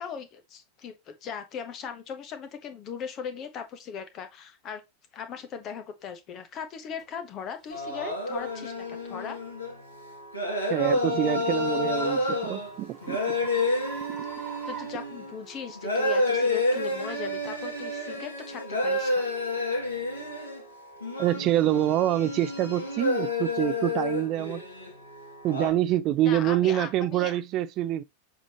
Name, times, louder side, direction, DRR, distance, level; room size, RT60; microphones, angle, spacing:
voice 1, 0.0-4.8 5.1-9.4 14.6-19.2 26.2-27.4, left 7 dB, 35° left, 1.4 m, -39 dB
sound 1, 7.0-7.1 7.7-7.9 8.5-8.7 11.3-15.8, right 5 dB, 20° right, 1.8 m, -43 dB
sound 2, 7.7-25.7, left 2 dB, 80° left, 2.5 m, -30 dB
voice 2, 10.7-13.2 21.2-24.6 25.4-28.0, right 13 dB, 35° right, 0.4 m, -26 dB
7.3 x 4.8 x 3.0 m
figure-of-eight pair, 90°, 0 cm